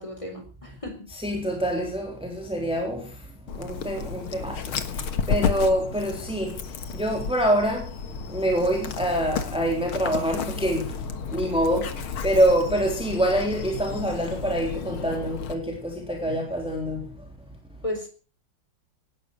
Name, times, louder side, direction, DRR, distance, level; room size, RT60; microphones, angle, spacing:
voice 1, 0.0-1.0 17.8-18.1, left 1 dB, 15° left, 4.6 m, -34 dB
voice 2, 1.1-17.8, right 1 dB, ahead, 3.5 m, -26 dB
Dog, 3.5-15.5, left 6 dB, 80° left, 2.3 m, -32 dB
18.0 x 11.5 x 6.7 m
omnidirectional pair, 2.3 m